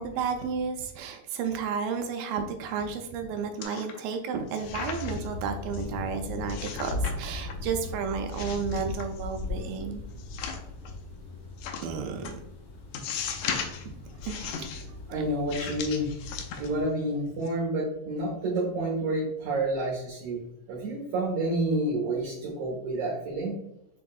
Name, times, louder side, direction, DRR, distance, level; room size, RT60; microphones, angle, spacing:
voice 1, 0.0-10.0 11.8-12.3 13.9-14.0 14.3-14.7, right 6 dB, 85° right, 5 dB, 2.2 m, -32 dB
sound 1, 3.6-4.2 4.5-5.3 5.7-5.9 6.5-7.2 7.5-7.9 8.3-9.4 10.2-10.9 11.6-11.9 12.3-12.4 12.9-13.9 14.2-14.9 15.5-17.0 17.3-17.5, left 7 dB, 85° left, 1.6 m, -37 dB
sound 2, 4.6-16.8, left 2 dB, 55° left, 1.0 m, -38 dB
voice 2, 15.1-16.1 16.6-23.6, right 1 dB, 65° right, -4 dB, 2.3 m, -29 dB
6.6 x 3.5 x 2.3 m, 0.83 s
omnidirectional pair, 3.9 m